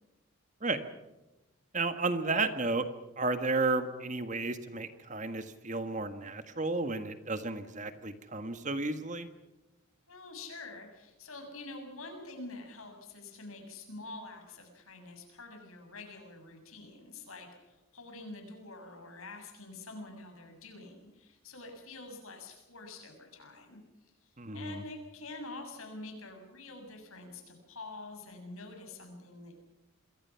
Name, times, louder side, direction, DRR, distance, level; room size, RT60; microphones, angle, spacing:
voice 1, 1.7-2.8 3.2-9.3 24.4-24.8, right 3 dB, 35° right, 9 dB, 1.6 m, -32 dB
voice 2, 10.1-29.5, left 2 dB, 80° left, 4 dB, 7.1 m, -47 dB
27.5 x 22.0 x 5.8 m, 1.0 s
head